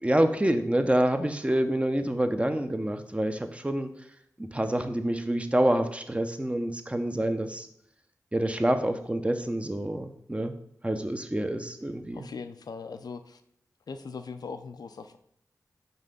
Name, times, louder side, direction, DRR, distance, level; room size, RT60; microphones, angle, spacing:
voice 1, 0.0-3.9 4.4-7.7 8.3-10.5 10.8-12.2, right 1 dB, 20° right, 8 dB, 0.7 m, -27 dB
voice 2, 12.1-13.4 13.9-15.2, left 5 dB, 75° left, 9 dB, 0.5 m, -40 dB
5.5 x 3.3 x 5.3 m, 0.71 s
cardioid pair, 45°, 7 cm